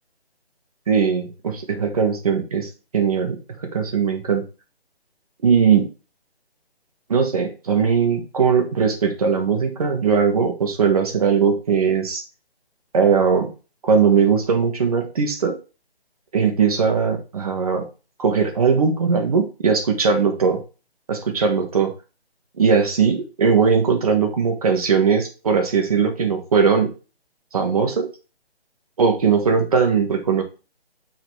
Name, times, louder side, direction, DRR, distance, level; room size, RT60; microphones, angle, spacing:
voice 1, 0.9-3.4 3.6-4.4 5.4-5.9 7.1-12.2 12.9-13.5 13.8-15.6 16.3-17.8 18.2-20.6 21.1-21.9 22.6-26.9 27.5-28.1 29.0-30.4, right 6 dB, 35° right, 3 dB, 1.1 m, -19 dB
6.4 x 3.9 x 4.6 m, 0.32 s
hypercardioid pair, 165°, 32 cm